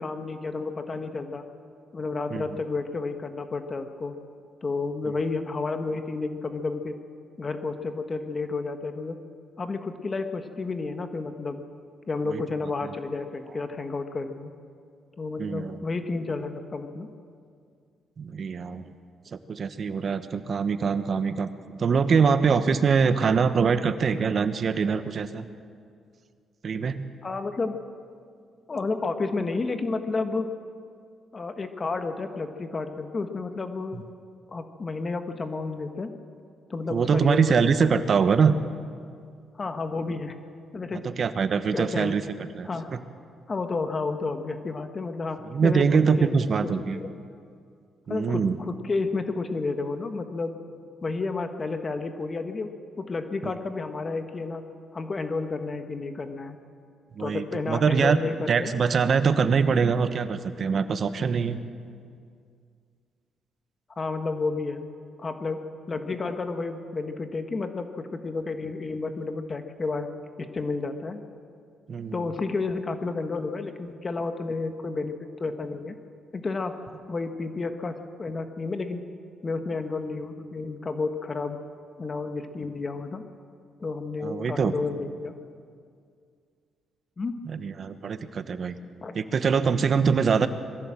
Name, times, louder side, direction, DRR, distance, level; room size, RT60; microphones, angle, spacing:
voice 1, 0.0-1.4 1.9-4.1 4.6-6.9 7.4-9.2 9.6-11.6 12.1-14.5 15.2-17.1 27.2-27.8 28.7-30.5 31.3-34.0 34.5-36.1 36.7-37.9 39.6-40.4 40.7-41.0 41.7-42.2 42.6-42.9 43.5-45.9 46.2-46.3 46.9-47.1 48.1-50.6 51.0-52.7 53.0-54.6 54.9-56.6 57.2-58.7 64.0-64.9 65.2-65.6 65.9-70.1 70.4-71.2 72.1-75.9 76.3-76.8 77.1-79.0 79.4-81.6 82.0-83.2 83.8-85.3 87.2-87.4 89.0-89.1, left 3 dB, 35° left, 7 dB, 1.4 m, -31 dB
voice 2, 15.4-15.8 18.2-18.9 19.3-21.5 21.8-25.5 26.6-27.0 36.9-38.5 41.0-42.2 42.5-43.0 45.5-47.0 48.1-48.6 53.4-53.5 57.2-58.2 58.5-61.6 71.9-72.2 84.2-84.7 87.4-88.7 89.1-90.5, right 5 dB, 50° right, 11 dB, 1.2 m, -23 dB
22.5 x 15.0 x 7.7 m, 2.3 s
cardioid pair, 90°, 0 cm